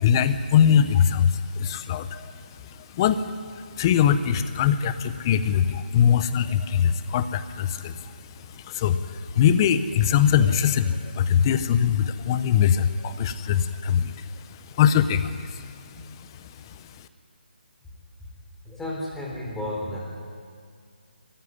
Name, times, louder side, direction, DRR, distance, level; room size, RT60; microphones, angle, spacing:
voice 1, 0.0-17.1, left 8 dB, 25° left, 13 dB, 0.7 m, -23 dB
voice 2, 18.6-20.0, left 1 dB, 5° left, -4 dB, 3.9 m, -32 dB
19.5 x 14.5 x 10.0 m, 2.2 s
figure-of-eight pair, 155°, 6 cm